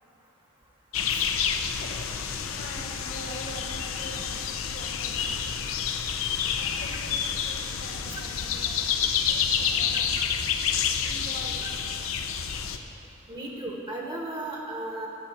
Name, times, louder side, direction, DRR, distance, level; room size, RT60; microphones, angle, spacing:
sound 1, 0.9-12.8, left 7 dB, 85° left, 0.6 m, -29 dB
voice 1, 1.5-5.4 6.6-10.3 11.0-11.8, equal, 45° left, 0 dB, 1.2 m, -44 dB
voice 2, 13.3-15.1, right 1 dB, 25° right, -1 dB, 1.1 m, -35 dB
10.5 x 6.1 x 7.8 m, 2.7 s
head